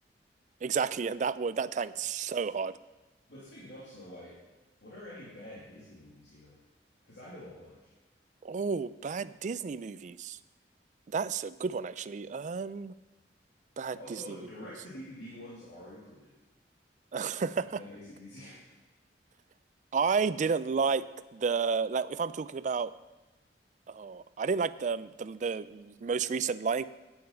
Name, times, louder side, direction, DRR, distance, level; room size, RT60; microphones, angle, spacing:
voice 1, 0.6-2.7 8.4-10.4 11.1-12.9 13.8-14.4 17.1-17.8 19.9-21.0 21.3-22.9 23.9-26.8, right 5 dB, 45° right, 16 dB, 0.3 m, -31 dB
voice 2, 3.3-4.4 4.8-6.5 7.0-7.9 13.9-16.3 17.7-18.7, left 1 dB, 75° left, -7 dB, 2.6 m, -47 dB
9.6 x 9.0 x 5.6 m, 1.1 s
head